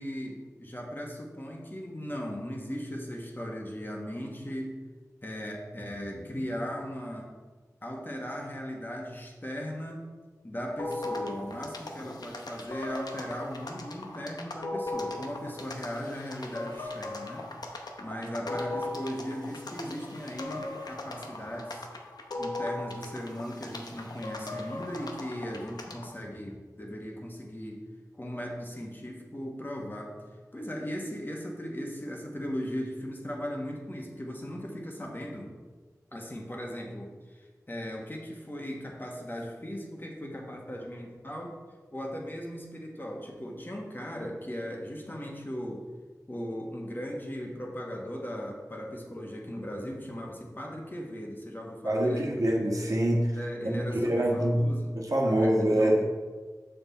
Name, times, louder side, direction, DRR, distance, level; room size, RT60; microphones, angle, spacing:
voice 1, 0.0-4.8 5.2-7.3 7.8-10.1 10.4-17.5 18.0-21.9 22.3-27.8 28.2-30.1 30.5-35.5 36.1-41.5 41.9-45.8 46.3-52.4 53.4-54.9 55.2-56.0, equal, 30° left, -1 dB, 1.4 m, -38 dB
sound 1, 10.8-26.1, left 2 dB, 85° left, 0.8 m, -38 dB
voice 2, 51.8-53.3 53.6-56.0, right 1 dB, 60° right, -1 dB, 1.4 m, -25 dB
6.8 x 5.9 x 4.2 m, 1.4 s
wide cardioid pair, 60°, 7 cm